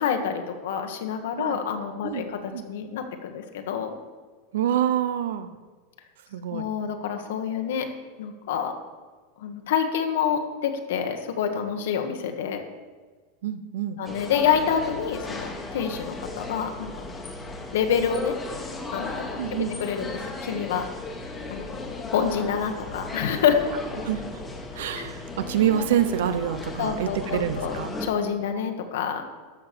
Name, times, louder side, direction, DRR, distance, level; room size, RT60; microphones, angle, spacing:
voice 1, 0.0-2.4 2.6-3.9 6.5-7.9 8.2-8.7 9.4-12.6 14.0-16.9 17.7-18.4 18.9-19.4 19.8-20.1 20.4-20.8 21.5-21.6 22.1-23.6 24.9-25.1 26.8-27.7 28.0-29.2, left 8 dB, 75° left, 5 dB, 1.4 m, -27 dB
voice 2, 4.5-5.5 6.3-6.7 13.4-14.0 19.4-19.7 24.0-24.2 24.7-28.0, right 10 dB, 80° right, 12 dB, 0.8 m, -26 dB
sound 1, 14.0-28.1, left 2 dB, 10° left, 1.3 m, -36 dB
13.0 x 6.0 x 6.9 m, 1.4 s
supercardioid pair, 165°, 0 cm